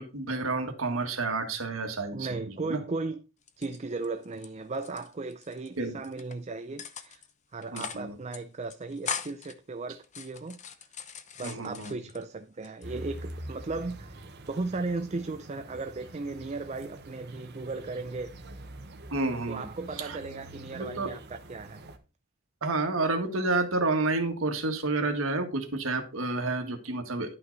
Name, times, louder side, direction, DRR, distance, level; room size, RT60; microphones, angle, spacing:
voice 1, 0.0-2.8 5.8-6.0 7.7-8.2 11.4-12.0 19.1-19.7 20.0-20.2 20.7-21.1 22.6-27.3, right 3 dB, 75° right, 1.8 m, -30 dB
voice 2, 2.1-3.2 3.6-7.2 7.5-10.6 11.4-14.2 14.5-18.3 19.5-21.8, right 3 dB, 35° right, 0.5 m, -36 dB
sound 1, 3.4-4.5 4.7-5.7 6.0-6.4 6.8-7.3 7.6-8.1 8.3-8.4 8.7-9.5 10.0-12.2 12.6-13.3, left 6 dB, 35° left, 0.8 m, -40 dB
sound 2, 12.8-22.0, right 1 dB, 55° right, 1.2 m, -45 dB
11.0 x 5.8 x 4.0 m
head